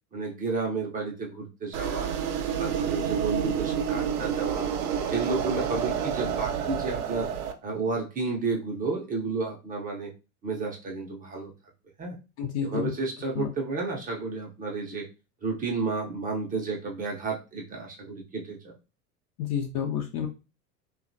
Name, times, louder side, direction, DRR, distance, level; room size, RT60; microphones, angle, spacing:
voice 1, 0.1-2.1 2.5-4.7 5.1-7.3 7.6-10.1 10.4-11.5 12.0-12.2 12.6-15.1 15.4-18.7, right 3 dB, 20° right, 0 dB, 0.5 m, -31 dB
sound 1, 1.7-7.5, right 8 dB, 65° right, 0.6 m, -29 dB
voice 2, 12.4-12.9 13.4-13.5 19.4-20.3, left 8 dB, 35° left, 4 dB, 0.5 m, -29 dB
2.7 x 2.3 x 2.5 m, 0.30 s
hypercardioid pair, 90°, 48 cm